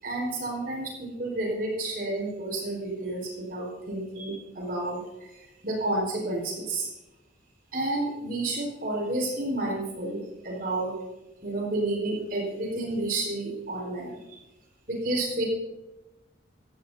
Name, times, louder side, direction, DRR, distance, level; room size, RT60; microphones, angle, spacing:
voice 1, 0.0-6.9 7.7-10.9 11.4-14.4 14.9-15.4, right 2 dB, 50° right, -2 dB, 4.8 m, -30 dB
18.0 x 14.0 x 2.8 m, 1.0 s
head